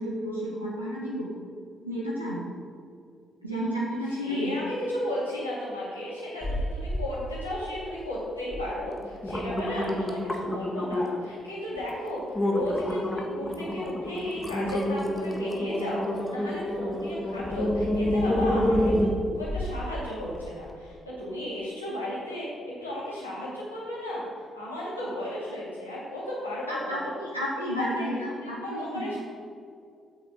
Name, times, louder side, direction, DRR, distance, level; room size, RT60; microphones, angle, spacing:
voice 1, 0.0-1.3 1.8-2.5 3.4-4.6 26.7-29.1, equal, 90° right, -7 dB, 1.1 m, -31 dB
voice 2, 4.1-19.1 19.3-24.2 24.5-27.1 27.6-29.2, left 1 dB, 90° left, -8 dB, 2.7 m, -34 dB
sound 1, 6.4-7.1 7.4-8.0 8.5-8.6 9.0-11.3 11.8-11.9 12.4-19.9 20.3-20.4, left 1 dB, 15° left, 1.5 m, -28 dB
8.5 x 6.7 x 6.8 m, 2.3 s
figure-of-eight pair, 40°, 0 cm